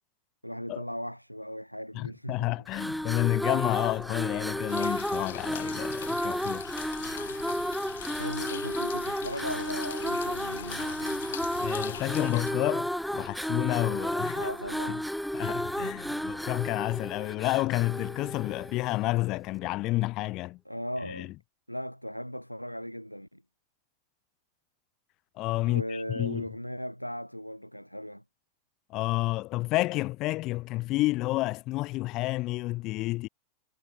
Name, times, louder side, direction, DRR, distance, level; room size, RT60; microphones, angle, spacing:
voice 1, 0.4-2.6 8.1-11.2 14.3-15.1 15.8-16.2 20.7-21.3 21.7-23.4 25.7-28.2, equal, 90° left, 5.8 m, -38 dB
voice 2, 1.9-6.6 11.6-14.5 14.9-15.0 15.3-20.6 21.1-21.3 25.4-26.5 28.9-33.3, left 19 dB, 40° left, 3.5 m, -30 dB
sound 1, 2.7-19.1, equal, ahead, 1.3 m, -32 dB
sound 2, 4.7-12.5, left 11 dB, 60° left, 2.6 m, -42 dB
figure-of-eight pair, 90°, 0 cm